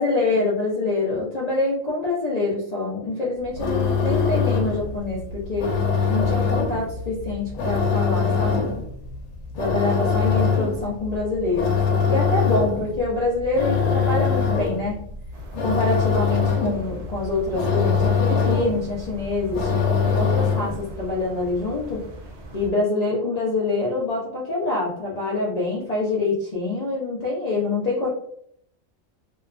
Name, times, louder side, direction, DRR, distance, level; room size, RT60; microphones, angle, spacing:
voice 1, 0.0-5.7 6.1-8.7 9.6-11.8 12.1-15.0 15.6-22.0 22.5-28.1, left 3 dB, 60° left, -5 dB, 0.4 m, -25 dB
sound 1, 3.4-20.9, left 5 dB, 90° left, 1.0 m, -23 dB
sound 2, 15.3-22.7, right 1 dB, 60° right, 0.6 m, -40 dB
2.7 x 2.3 x 2.3 m, 0.69 s
omnidirectional pair, 1.4 m